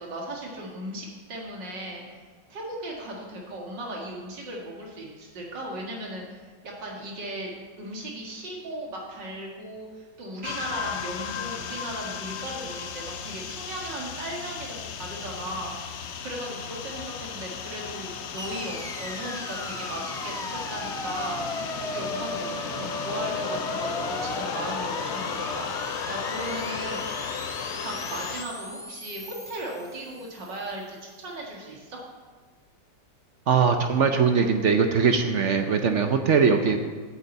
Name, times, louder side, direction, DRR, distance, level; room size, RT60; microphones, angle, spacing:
voice 1, 0.0-2.0 2.5-15.7 16.2-21.4 21.8-25.7 26.1-27.1 27.8-32.0, right 1 dB, 80° right, -2 dB, 2.6 m, -37 dB
sound 1, 10.4-28.4, left 7 dB, 60° left, 0.7 m, -35 dB
sound 2, 18.4-30.6, equal, 5° left, 0.4 m, -36 dB
voice 2, 33.5-36.8, right 5 dB, 55° right, 6 dB, 0.8 m, -21 dB
9.0 x 6.9 x 8.0 m, 1.5 s
omnidirectional pair, 1.9 m